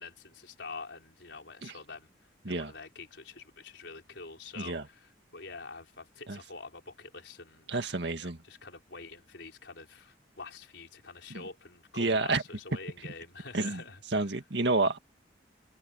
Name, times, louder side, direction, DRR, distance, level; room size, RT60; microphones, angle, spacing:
voice 1, 0.0-2.1 2.5-14.2, left 4 dB, 75° left, 4.3 m, -46 dB
voice 2, 7.7-8.4 11.3-11.4 12.0-12.4 13.5-13.8 14.1-15.0, right 3 dB, 70° right, 2.0 m, -29 dB
head